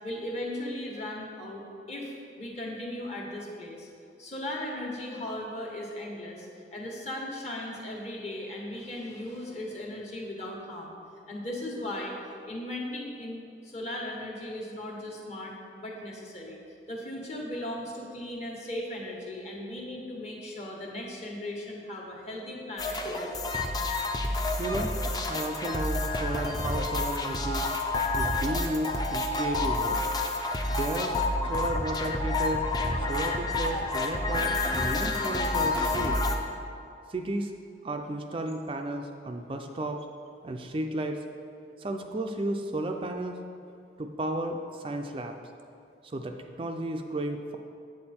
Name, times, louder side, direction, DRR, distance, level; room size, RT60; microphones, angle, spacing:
voice 1, 0.0-3.9 4.2-11.0 11.3-12.2 12.4-16.6 16.9-23.5, left 1 dB, 40° left, -1 dB, 1.4 m, -37 dB
sound 1, 22.8-36.4, left 2 dB, 25° left, 0.6 m, -29 dB
voice 2, 24.6-25.0 25.3-27.7 28.2-30.0 30.7-31.2 31.5-32.7 33.0-36.2 37.1-37.5 37.8-40.1 40.4-41.2 41.8-43.4 44.0-45.4 46.0-47.6, right 1 dB, 30° right, 4 dB, 0.4 m, -33 dB
8.6 x 7.7 x 4.3 m, 2.5 s
head